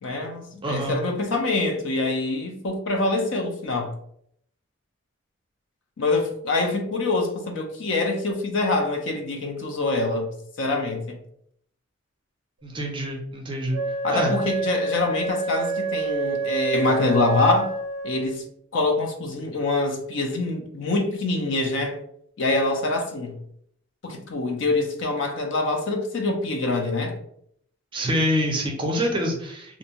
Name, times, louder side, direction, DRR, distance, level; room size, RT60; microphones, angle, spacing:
voice 1, 0.0-3.9 6.0-10.3 10.6-11.2 14.0-17.7 18.0-18.4 18.7-22.0 22.4-23.4 24.0-27.1, left 2 dB, 55° left, 3 dB, 0.5 m, -25 dB
voice 2, 0.6-1.0 12.6-13.8 14.1-14.4 27.9-29.8, equal, 20° right, 0 dB, 0.5 m, -26 dB
Wind instrument woodwind instrument, 13.7-18.4, right 3 dB, 75° right, 0.4 m, -28 dB
2.5 x 2.2 x 2.8 m, 0.68 s
head